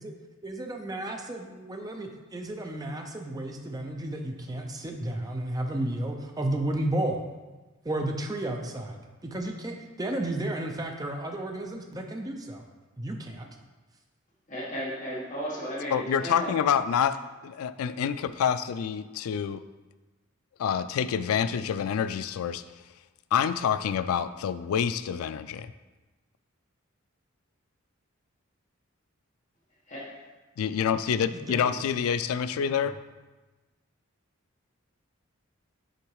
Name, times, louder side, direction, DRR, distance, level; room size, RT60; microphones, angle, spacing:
voice 1, 0.4-7.2 7.8-12.6 13.0-13.5 31.3-31.8, right 1 dB, 15° right, 3 dB, 0.6 m, -33 dB
voice 2, 14.5-16.5 29.9-30.1, equal, 35° left, -5 dB, 1.4 m, -34 dB
voice 3, 15.9-17.2 17.4-19.6 20.6-22.6 23.3-25.7 30.6-33.0, left 7 dB, 85° left, 13 dB, 0.3 m, -27 dB
6.6 x 3.8 x 4.7 m, 1.2 s
head